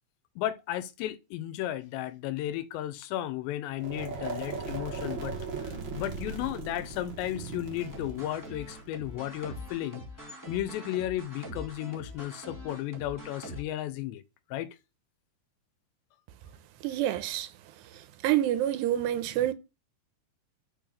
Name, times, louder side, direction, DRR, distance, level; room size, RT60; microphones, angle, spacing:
voice 1, 0.4-5.4 5.6-10.1 10.5-14.2 14.5-14.7, left 13 dB, 90° left, 3.0 m, -34 dB
sound 1, 3.8-9.7, right 4 dB, 45° right, 1.6 m, -38 dB
sound 2, 7.8-13.6, equal, 10° left, 1.1 m, -44 dB
voice 2, 16.8-17.5 18.2-19.5, right 12 dB, 85° right, 3.0 m, -27 dB
6.9 x 5.8 x 6.5 m
omnidirectional pair, 4.9 m